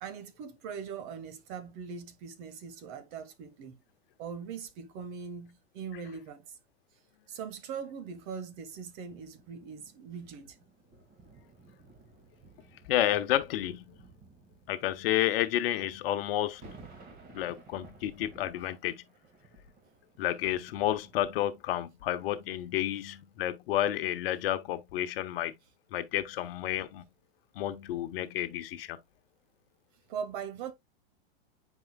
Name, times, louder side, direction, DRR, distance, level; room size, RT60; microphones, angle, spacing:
voice 1, 0.0-3.8 4.2-6.6 7.3-10.6 30.1-30.7, right 6 dB, 50° right, 1.5 m, -41 dB
sound 1, 9.1-21.8 22.5-22.7, right 3 dB, 25° right, 2.2 m, -56 dB
voice 2, 12.9-14.0 14.7-16.6 17.3-19.0 20.2-25.5 25.9-27.0 27.5-29.0, left 13 dB, 60° left, 1.1 m, -30 dB
9.0 x 4.8 x 2.3 m
hypercardioid pair, 120°, 32 cm